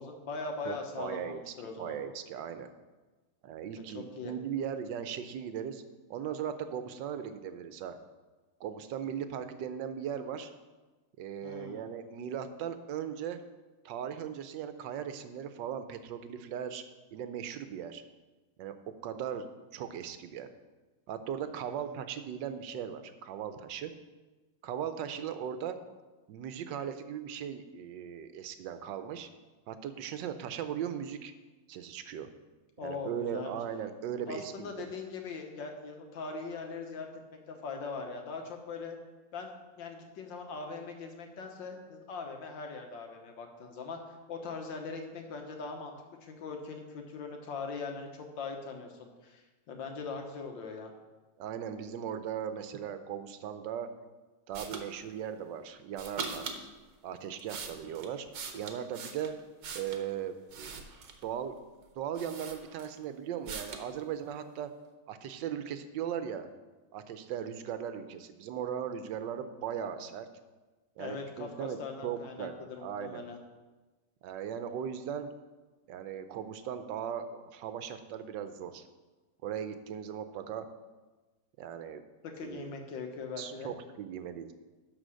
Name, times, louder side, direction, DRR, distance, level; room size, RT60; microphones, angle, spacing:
voice 1, 0.0-2.0 3.8-4.3 11.4-11.8 21.6-21.9 32.8-33.6 34.3-39.0 39.3-44.0 44.3-46.0 46.2-50.9 71.0-73.4 82.4-83.7, left 4 dB, 85° left, 3 dB, 1.8 m, -41 dB
voice 2, 0.6-1.5 1.8-2.7 3.4-5.8 6.1-8.0 8.6-10.5 11.2-13.4 13.8-16.8 17.1-18.0 18.6-18.7 19.0-19.4 19.7-20.5 21.1-23.9 24.6-25.8 26.3-29.3 29.7-31.3 31.7-32.3 32.8-34.9 51.4-53.9 54.5-56.5 57.0-58.3 58.6-59.3 59.7-60.9 61.2-61.5 62.0-64.7 65.1-66.5 66.9-70.3 71.0-71.8 72.0-72.5 72.8-73.3 74.2-75.3 75.9-78.9 79.4-80.7 81.6-82.0 82.4-82.7 83.4-84.5, right 8 dB, 80° right, 10 dB, 1.4 m, -38 dB
sound 1, 54.5-54.9 55.9-56.6 57.2-60.1 60.5-61.3 61.8-61.9 62.2-63.0 63.5-63.9, right 5 dB, 60° right, 1.4 m, -41 dB
11.5 x 4.1 x 6.3 m, 1.2 s
omnidirectional pair, 2.0 m